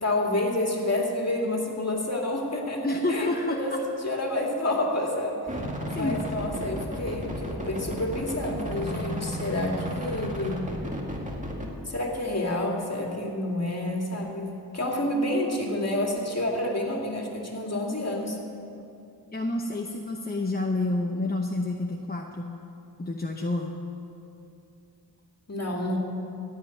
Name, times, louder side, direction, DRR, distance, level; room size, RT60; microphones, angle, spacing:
voice 1, 0.0-3.3 3.6-3.8 4.0-10.7 11.8-14.5 14.7-18.4 25.5-26.0, left 1 dB, 40° left, 0 dB, 2.4 m, -29 dB
voice 2, 2.8-3.8 5.9-6.2 19.3-22.5 23.0-23.7, left 2 dB, 25° left, 1 dB, 0.9 m, -29 dB
sound 1, 5.5-11.7, equal, 20° right, 2.1 m, -33 dB
16.0 x 5.7 x 9.2 m, 2.7 s
cardioid pair, 60°, 41 cm